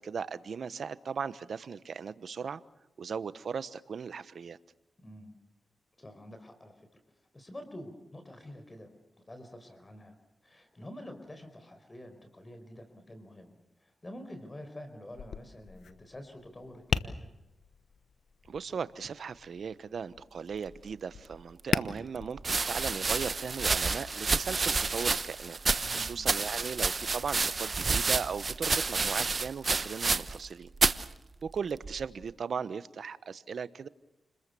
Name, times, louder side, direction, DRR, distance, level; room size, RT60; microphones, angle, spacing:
voice 1, 0.0-2.6 3.0-4.6 18.5-25.6 25.9-30.7 31.4-33.9, right 6 dB, 70° right, 15 dB, 1.1 m, -37 dB
voice 2, 5.0-5.3 6.0-6.7 7.3-8.9 9.2-10.2 10.4-17.3 25.8-26.1, left 1 dB, 30° left, 8 dB, 5.0 m, -47 dB
Tap, 15.1-24.8, left 7 dB, 80° left, 1.1 m, -40 dB
sound 1, 21.3-21.4 22.4-30.5 30.7-31.1 31.8-32.2, right 4 dB, 50° right, 1.0 m, -29 dB
29.5 x 21.5 x 7.0 m, 0.97 s
cardioid pair, 50°, 0 cm